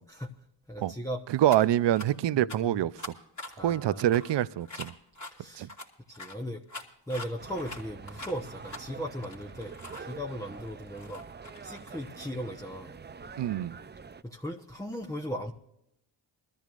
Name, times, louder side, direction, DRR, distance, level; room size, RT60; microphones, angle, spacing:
voice 1, 0.7-1.2 2.3-2.8 3.5-4.2 5.3-5.7 6.1-6.6 7.1-11.2 11.6-13.3 14.2-15.5, equal, 5° left, 1.1 m, -38 dB
voice 2, 1.3-2.9 3.6-4.9 5.5-5.7 13.4-13.8, right 12 dB, 65° right, 0.6 m, -25 dB
sound 1, 1.4-1.6 1.9-2.1 2.5-2.6 3.0-5.3 5.7-10.0 10.5-12.1, left 2 dB, 40° left, 2.7 m, -43 dB
sound 2, 7.4-14.2, right 5 dB, 25° right, 0.5 m, -46 dB
22.0 x 13.5 x 2.5 m
cardioid pair, 65°, 46 cm